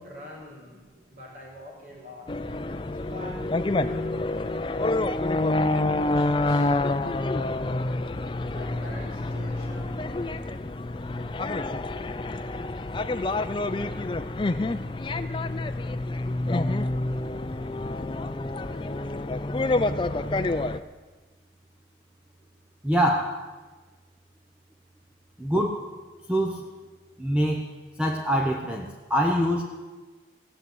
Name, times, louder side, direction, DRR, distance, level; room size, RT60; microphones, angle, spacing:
voice 1, 0.0-2.3 2.9-6.8 8.5-10.2, left 1 dB, 50° right, -4 dB, 5.5 m, -45 dB
sound 1, 2.3-20.8, left 2 dB, 25° left, 0.4 m, -28 dB
voice 2, 22.8-23.4 25.4-25.9 26.3-26.7 27.2-27.6 28.0-29.6, equal, 5° right, 1 dB, 0.8 m, -24 dB
16.0 x 7.7 x 9.6 m, 1.3 s
head